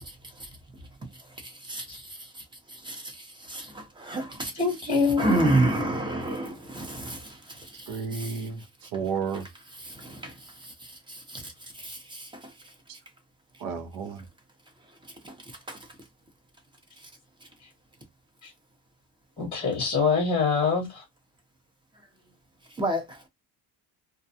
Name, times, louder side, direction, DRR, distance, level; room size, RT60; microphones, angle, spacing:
voice 1, 1.7-2.0 2.8-3.1 3.5-4.5 5.2-7.3 7.7-7.9 8.1-8.4 9.8-10.3 11.1-11.5 11.8-12.3 15.2-15.3 15.7-15.8 22.8-23.0, right 1 dB, 10° right, 0.6 m, -28 dB
voice 2, 4.5-5.3 19.4-21.0, left 5 dB, 15° left, 0.9 m, -24 dB
voice 3, 7.9-8.6 8.9-9.5 13.6-14.2, right 6 dB, 70° right, 0.8 m, -31 dB
2.4 x 2.2 x 2.6 m
cardioid pair, 150°, 42 cm